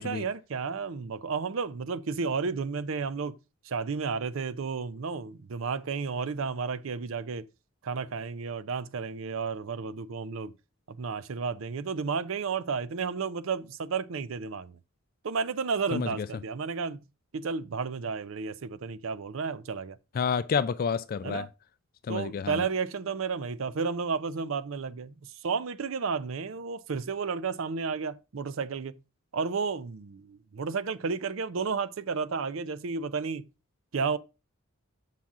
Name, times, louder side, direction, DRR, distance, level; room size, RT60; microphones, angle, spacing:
voice 1, 0.0-3.4 3.6-7.5 7.8-10.5 10.9-14.8 15.2-17.0 17.3-20.0 21.2-21.5 22.1-25.1 25.4-29.0 29.3-33.4 33.9-34.2, right 5 dB, 70° right, 0.5 m, -32 dB
voice 2, 20.1-21.5 22.1-22.6, left 6 dB, 45° left, 0.3 m, -29 dB
7.3 x 5.8 x 3.7 m
head